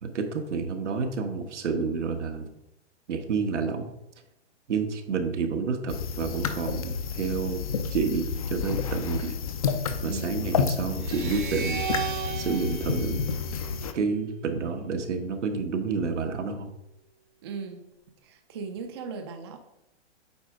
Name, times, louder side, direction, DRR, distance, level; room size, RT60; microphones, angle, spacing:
voice 1, 0.0-2.5 3.1-3.9 4.7-9.4 10.0-11.8 12.3-13.3 13.9-16.7, right 5 dB, 85° right, 4 dB, 1.5 m, -29 dB
sound 1, 5.9-13.9, left 6 dB, 35° left, 0.5 m, -30 dB
voice 2, 10.0-10.4 17.4-17.8 18.2-19.6, right 5 dB, 25° right, 5 dB, 0.5 m, -37 dB
sound 2, 11.0-14.3, right 8 dB, 45° right, 0.9 m, -35 dB
8.8 x 3.5 x 5.0 m, 0.87 s
hypercardioid pair, 160°, 35 cm